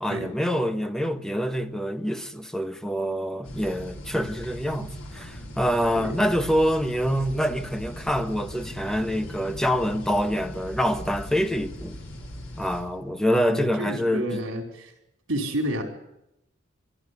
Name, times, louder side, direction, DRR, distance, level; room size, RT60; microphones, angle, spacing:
voice 1, 0.0-12.0 12.6-14.4, equal, 5° left, 1.1 m, -26 dB
sound 1, 3.4-12.8, equal, 80° left, 5.2 m, -39 dB
voice 2, 13.3-14.9 15.3-15.8, right 1 dB, 75° right, 4.6 m, -30 dB
22.0 x 13.5 x 9.7 m
head